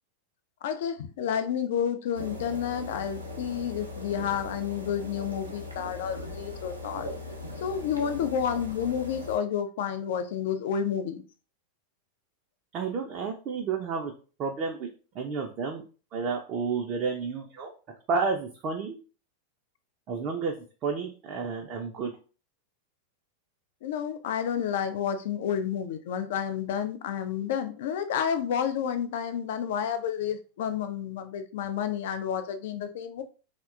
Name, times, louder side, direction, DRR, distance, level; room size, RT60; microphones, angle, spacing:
voice 1, 0.6-7.1 7.6-11.2 23.8-33.2, left 8 dB, 55° left, 0.3 m, -30 dB
sound 1, 2.1-9.4, left 2 dB, 85° right, 0.6 m, -39 dB
voice 2, 12.7-14.1 14.4-14.9 15.1-15.8 16.1-17.7 18.1-19.0 20.1-20.6 20.8-22.1, right 5 dB, 35° right, 0.4 m, -31 dB
2.7 x 2.1 x 2.4 m
figure-of-eight pair, 90°, 0 cm